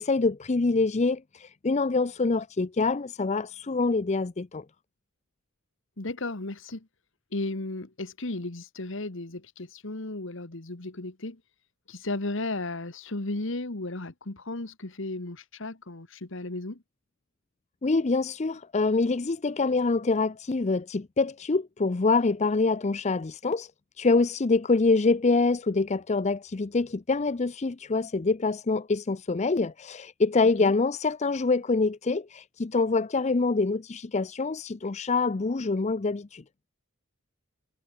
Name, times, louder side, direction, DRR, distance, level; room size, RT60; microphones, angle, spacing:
voice 1, 0.0-4.6 17.8-23.7 24.0-36.4, left 3 dB, 35° left, 0.5 m, -25 dB
voice 2, 6.0-6.9 7.3-11.4 11.9-16.8 30.6-30.7, left 2 dB, 65° left, 1.7 m, -34 dB
head